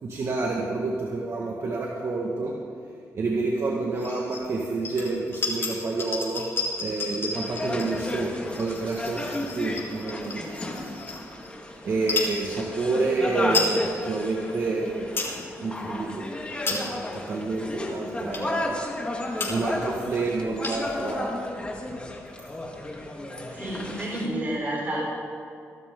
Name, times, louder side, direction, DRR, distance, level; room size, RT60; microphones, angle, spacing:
voice 1, 0.0-2.5 3.1-6.5 6.8-10.4 11.8-15.2 15.6-16.3 16.6-18.8 19.5-21.4, right 3 dB, 50° right, -2 dB, 1.8 m, -28 dB
sound 1, 4.0-4.4 4.8-11.5 12.0-12.3 13.0-13.1 13.3-13.8 14.2-14.3 14.8-15.4 15.8-16.0 16.4-17.1 17.7-17.8 18.3-18.6 19.1-19.2 19.4-19.8 20.1-20.2 20.3-21.0, left 3 dB, 40° left, 3.5 m, -32 dB
sound 2, 7.3-24.3, left 1 dB, 20° left, 2.1 m, -33 dB
voice 2, 10.3-10.9 23.5-25.1, right 1 dB, 30° right, -5 dB, 4.2 m, -31 dB
23.0 x 12.0 x 3.8 m, 2.4 s
cardioid pair, 100°, 6 cm